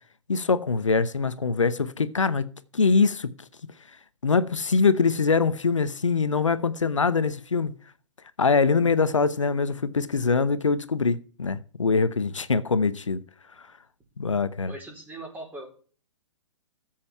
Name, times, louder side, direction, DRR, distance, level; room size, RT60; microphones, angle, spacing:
voice 1, 0.3-3.3 4.2-7.7 8.4-13.2 14.2-14.7, left 4 dB, 80° left, 0.8 m, -23 dB
voice 2, 14.7-15.6, right 2 dB, 10° right, 4.2 m, -40 dB
14.0 x 7.6 x 4.6 m
figure-of-eight pair, 115°, 16 cm